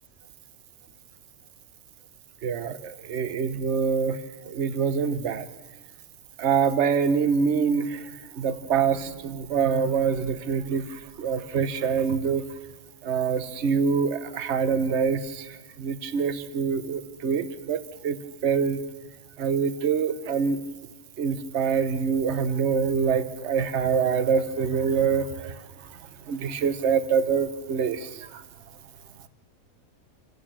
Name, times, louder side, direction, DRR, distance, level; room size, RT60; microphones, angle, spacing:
voice 1, 2.4-4.2 4.5-5.5 6.4-8.0 8.4-12.5 13.0-15.5 15.8-18.2 18.4-18.8 19.4-20.6 21.2-25.6 26.3-28.1, right 6 dB, 55° right, 12 dB, 1.2 m, -25 dB
28.0 x 15.5 x 7.4 m, 1.3 s
omnidirectional pair, 1.5 m